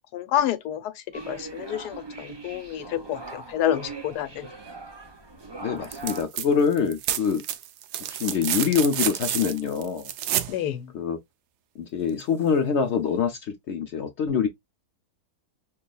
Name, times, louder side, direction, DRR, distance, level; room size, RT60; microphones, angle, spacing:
voice 1, 0.1-0.9 1.3-4.5 10.5-10.9, left 11 dB, 85° left, 1.2 m, -28 dB
sound 1, 1.1-6.2, right 3 dB, 35° right, 0.4 m, -40 dB
voice 2, 5.6-7.4 8.1-10.1 10.9-11.2 11.8-14.5, left 6 dB, 65° left, 0.7 m, -25 dB
sound 2, 5.8-6.5 6.7-10.6 12.2-12.3, right 11 dB, 85° right, 1.1 m, -29 dB
5.6 x 2.3 x 2.2 m
omnidirectional pair, 1.7 m